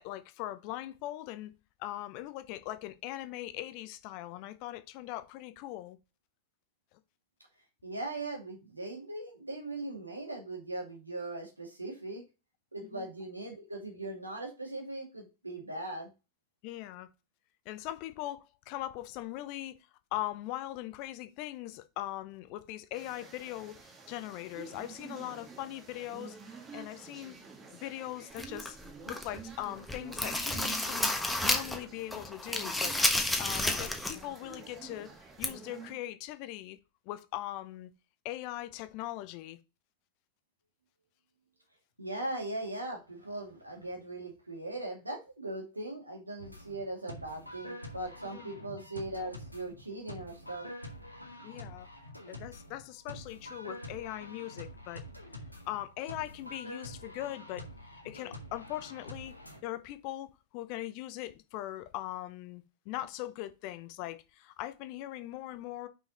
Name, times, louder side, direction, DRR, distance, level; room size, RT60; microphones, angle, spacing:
voice 1, 0.0-1.5 1.8-6.0 12.9-13.1 16.6-17.1 17.6-19.8 20.1-26.4 26.7-27.4 27.7-28.8 29.0-31.1 31.4-33.0 33.4-35.1 35.4-36.8 37.1-37.9 38.2-39.6 48.2-48.6 51.4-51.9 52.3-55.0 55.7-57.7 58.0-59.3 59.6-60.3 60.5-65.9, left 15 dB, 45° left, 0.8 m, -40 dB
voice 2, 7.8-12.2 12.7-16.1 42.0-50.7, right 2 dB, 85° right, 2.2 m, -39 dB
sound 1, 22.9-35.9, right 5 dB, 25° right, 1.7 m, -49 dB
sound 2, 28.4-29.4 29.8-31.8 32.1-34.2 34.5-34.6 35.4-35.5, left 1 dB, 5° left, 1.2 m, -31 dB
sound 3, 46.4-59.6, left 1 dB, 90° left, 1.4 m, -47 dB
5.7 x 5.6 x 4.1 m
figure-of-eight pair, 90°, 0 cm